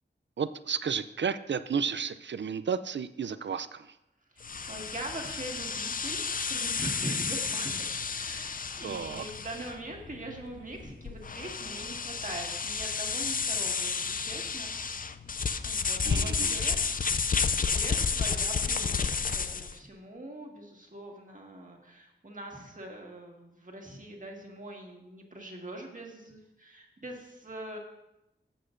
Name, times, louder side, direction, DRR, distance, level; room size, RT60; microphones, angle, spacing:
voice 1, 0.4-4.0 8.8-9.2 16.0-16.6, right 6 dB, 65° right, 13 dB, 0.4 m, -32 dB
voice 2, 4.3-6.2 6.4-14.8 15.6-17.2 17.5-27.8, right 1 dB, 40° right, 0 dB, 1.7 m, -42 dB
sound 1, 4.4-19.8, left 5 dB, 45° left, 0.4 m, -31 dB
14.0 x 7.7 x 2.6 m, 0.91 s
wide cardioid pair, 60°, 20 cm